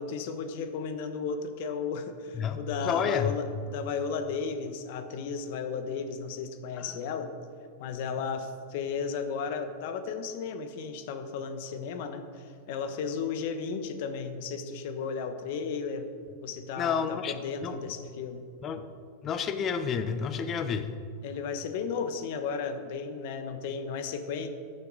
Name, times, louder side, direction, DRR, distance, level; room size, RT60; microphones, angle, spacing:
voice 1, 0.0-7.3 7.8-16.1 16.4-18.4 21.2-24.5, left 5 dB, 60° left, 8 dB, 1.1 m, -34 dB
voice 2, 2.3-3.3 6.8-7.0 16.8-17.3 17.6-17.7 18.6-18.8 19.2-20.9, left 7 dB, 35° left, 10 dB, 0.9 m, -30 dB
14.0 x 9.1 x 4.0 m, 2.2 s
hypercardioid pair, 110°, 0 cm